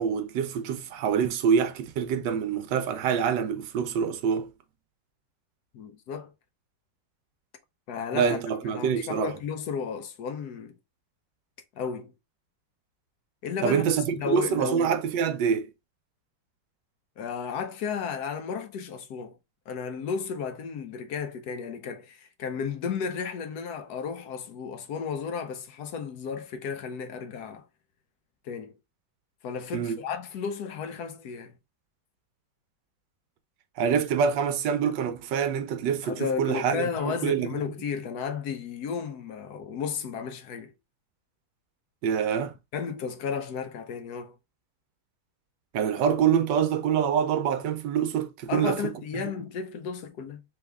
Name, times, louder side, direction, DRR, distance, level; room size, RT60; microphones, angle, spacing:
voice 1, 0.0-4.5 8.1-9.3 13.6-15.7 29.7-30.0 33.8-37.6 42.0-42.6 45.7-49.2, right 7 dB, 75° right, 1.3 m, -26 dB
voice 2, 5.7-6.3 7.9-8.4 8.7-10.8 11.8-12.1 13.4-13.9 14.1-14.9 17.2-19.4 19.7-27.7 28.4-28.7 29.4-31.6 36.0-40.7 42.7-44.3 48.5-50.4, left 6 dB, 65° left, 1.1 m, -33 dB
3.6 x 3.3 x 3.4 m
omnidirectional pair, 2.0 m